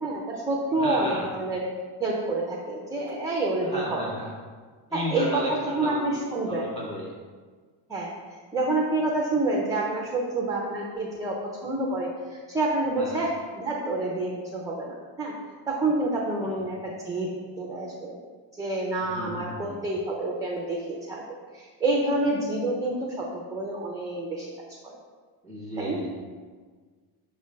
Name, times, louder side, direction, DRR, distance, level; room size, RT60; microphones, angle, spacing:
voice 1, 0.0-1.6 2.0-4.0 4.9-6.7 7.9-8.1 8.5-11.4 11.6-15.3 15.7-16.8 17.0-17.3 17.6-18.1 18.6-21.2 21.5-24.5 24.8-24.9 25.8-26.0, right 2 dB, 10° right, -2 dB, 0.3 m, -28 dB
voice 2, 0.7-1.3 3.6-4.4 4.9-6.1 6.5-7.1 13.0-13.2 16.5-16.7 19.0-19.8 25.4-26.1, equal, 15° left, -5 dB, 1.5 m, -33 dB
5.9 x 3.2 x 5.5 m, 1.5 s
cardioid pair, 175°, 43 cm